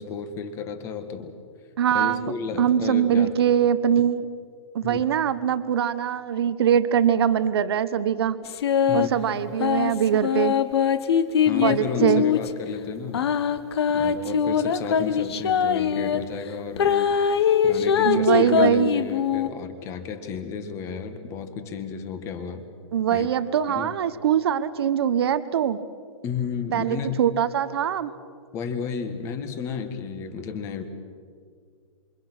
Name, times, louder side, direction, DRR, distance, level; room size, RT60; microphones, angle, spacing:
voice 1, 0.0-1.3 1.9-3.3 4.8-5.0 8.9-9.5 11.4-13.3 13.9-22.6 23.1-23.3 23.7-23.9 26.2-27.2 28.5-30.8, left 6 dB, 15° left, 9 dB, 1.6 m, -33 dB
voice 2, 1.8-2.3 2.6-4.3 4.7-8.4 8.9-10.6 11.6-12.3 18.0-18.9 22.9-25.8 26.7-28.1, right 9 dB, 50° right, 13 dB, 1.2 m, -22 dB
sound 1, 8.4-9.1 9.6-12.5 13.1-16.2 16.8-19.5, left 7 dB, 55° left, 1.4 m, -22 dB
27.5 x 25.0 x 6.2 m, 2.1 s
hypercardioid pair, 170°, 16 cm